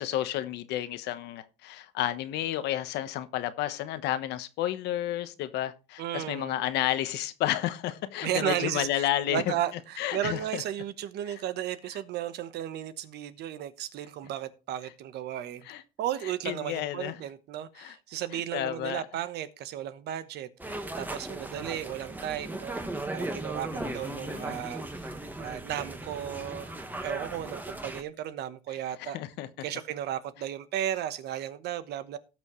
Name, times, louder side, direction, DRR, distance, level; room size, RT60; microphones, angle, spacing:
voice 1, 0.0-9.5 10.0-10.6 15.7-15.8 16.4-17.2 17.8-18.0 18.5-19.0 23.7-24.7 29.0-29.5, left 13 dB, 85° left, 1.1 m, -31 dB
voice 2, 6.0-6.7 8.2-15.7 16.0-22.8 23.1-25.1 25.4-29.2 29.6-32.2, right 11 dB, 75° right, 1.1 m, -34 dB
sound 1, 20.6-28.0, right 2 dB, 10° right, 1.4 m, -37 dB
18.0 x 6.3 x 3.1 m
cardioid pair, 110°, 17 cm